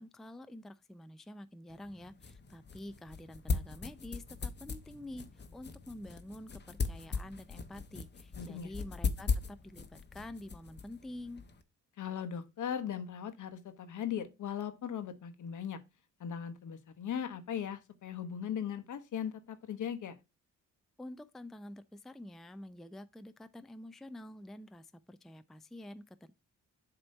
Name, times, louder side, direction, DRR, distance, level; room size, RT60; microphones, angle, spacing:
voice 1, 0.0-11.4 21.0-26.3, left 1 dB, ahead, 0.4 m, -48 dB
sound 1, 1.7-11.6, left 4 dB, 35° left, 0.9 m, -39 dB
voice 2, 8.4-8.7 12.0-15.8 16.2-20.1, left 8 dB, 70° left, 1.0 m, -38 dB
7.7 x 2.9 x 5.3 m
cardioid pair, 85°, 32 cm